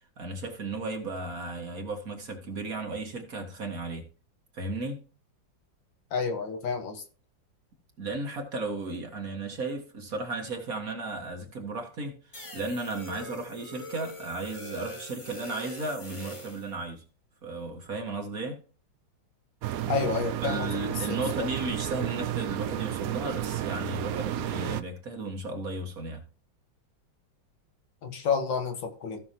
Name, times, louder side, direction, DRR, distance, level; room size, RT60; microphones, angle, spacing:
voice 1, 0.2-4.1 4.5-5.0 8.0-12.2 12.5-17.0 17.4-18.6 20.4-26.2, right 2 dB, 50° right, 1.9 m, -35 dB
voice 2, 6.1-7.0 19.9-20.7 21.4-21.5 28.0-29.2, left 5 dB, 70° left, 2.2 m, -29 dB
sound 1, 12.3-16.7, equal, 20° left, 1.0 m, -43 dB
sound 2, 19.6-24.8, right 12 dB, 75° right, 0.8 m, -32 dB
15.5 x 6.0 x 3.0 m
omnidirectional pair, 2.1 m